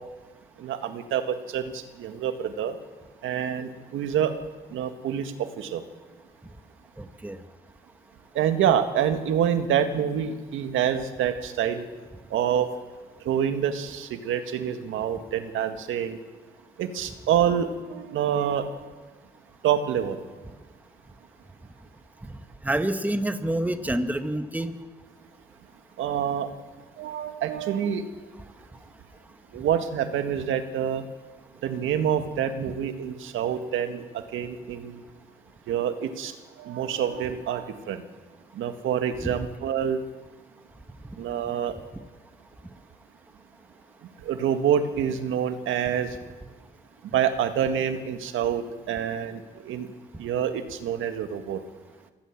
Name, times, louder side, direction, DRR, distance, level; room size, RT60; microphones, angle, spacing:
voice 1, 0.6-2.8 3.2-4.3 4.7-5.8 8.4-11.9 12.3-12.7 13.3-16.2 16.8-18.7 19.6-20.2 26.0-26.5 27.0-28.0 29.5-31.0 31.6-35.0 35.7-38.0 38.6-40.0 41.2-41.7 44.2-46.2 47.1-49.9 50.2-51.6, right 9 dB, 80° right, 8 dB, 1.9 m, -27 dB
voice 2, 7.0-7.4 22.6-24.7 39.2-39.4, right 1 dB, 10° right, 8 dB, 1.5 m, -27 dB
25.0 x 16.5 x 7.4 m, 1.3 s
cardioid pair, 90°, 20 cm